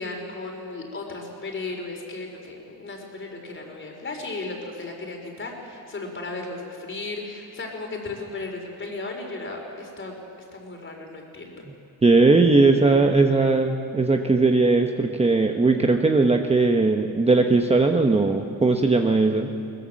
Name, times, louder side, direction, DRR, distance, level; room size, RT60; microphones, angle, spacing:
voice 1, 0.0-11.6, left 3 dB, 30° left, 2 dB, 4.2 m, -35 dB
voice 2, 12.0-19.5, right 3 dB, 15° right, 4 dB, 0.9 m, -19 dB
21.5 x 20.0 x 7.6 m, 2.5 s
cardioid pair, 135°, 37 cm